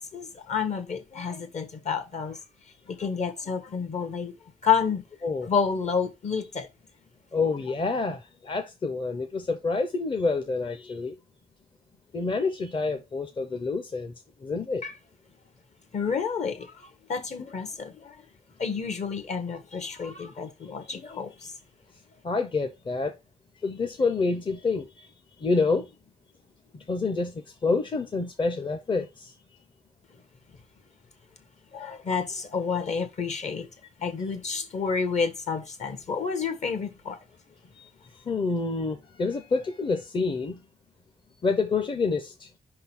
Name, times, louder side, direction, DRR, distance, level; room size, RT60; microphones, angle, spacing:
voice 1, 0.0-2.4 2.9-4.3 4.6-5.0 5.4-6.7 14.8-15.0 15.9-18.2 18.6-21.5 31.7-33.7 34.0-37.2, left 6 dB, 55° left, 1.5 m, -29 dB
voice 2, 7.3-11.1 12.1-14.1 14.4-14.8 22.2-23.1 23.6-25.1 25.4-25.9 26.7-29.3 37.8-37.9 38.3-40.6 41.4-42.5, left 4 dB, 35° left, 0.8 m, -28 dB
5.5 x 3.8 x 5.9 m
cardioid pair, 110°, 14 cm